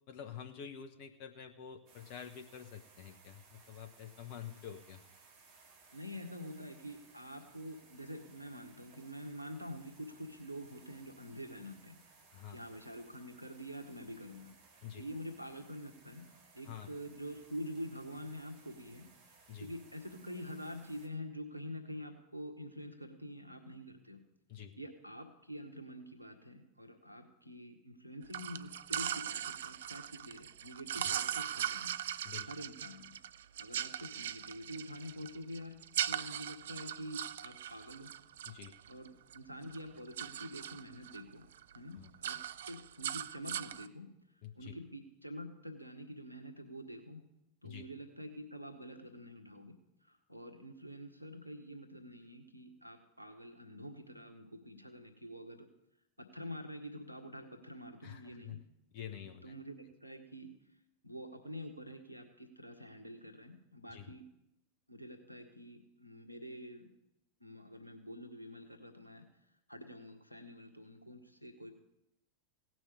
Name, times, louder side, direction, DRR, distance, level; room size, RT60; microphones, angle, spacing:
voice 1, 0.1-5.0 12.3-12.6 14.8-15.0 16.6-16.9 19.5-19.7 24.5-24.7 31.0-31.1 32.2-32.5 38.4-38.7 42.0-42.1 44.4-44.7 47.6-47.9 58.0-58.6 58.9-59.5 63.9-64.1, left 8 dB, 45° left, 6 dB, 1.0 m, -48 dB
sound 1, 1.9-21.1, right 4 dB, 45° right, 2.3 m, -62 dB
voice 2, 5.9-12.0 12.5-14.5 14.9-16.3 16.5-19.1 19.6-24.2 24.8-31.9 32.5-33.1 33.6-35.8 36.1-38.1 38.9-41.4 41.7-44.1 44.5-47.2 47.6-55.7 56.2-58.6 59.2-60.5 61.0-64.2 64.9-66.9 67.4-69.2 69.7-71.7, equal, 90° left, 4 dB, 1.5 m, -47 dB
sound 2, 28.3-39.4 39.7-41.2 41.5-41.8 42.0-43.9, right 10 dB, 60° right, 0.4 m, -40 dB
17.0 x 6.2 x 8.2 m, 0.86 s
figure-of-eight pair, 90°, 0 cm